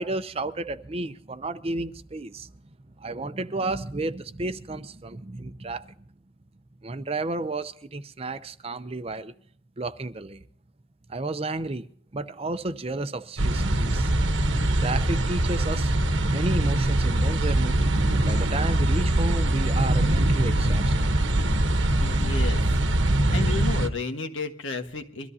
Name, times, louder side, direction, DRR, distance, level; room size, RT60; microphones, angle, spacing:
voice 1, 0.0-2.5 3.0-5.9 6.8-9.3 9.8-10.4 11.1-11.9 12.1-14.1 14.8-15.9 16.3-17.8 18.3-20.9, right 2 dB, 30° right, 0.6 m, -31 dB
sound 1, 13.4-23.9, right 1 dB, 75° right, 1.1 m, -23 dB
voice 2, 22.0-22.8 23.3-25.3, left 4 dB, 80° left, 1.6 m, -32 dB
23.0 x 13.5 x 2.8 m
head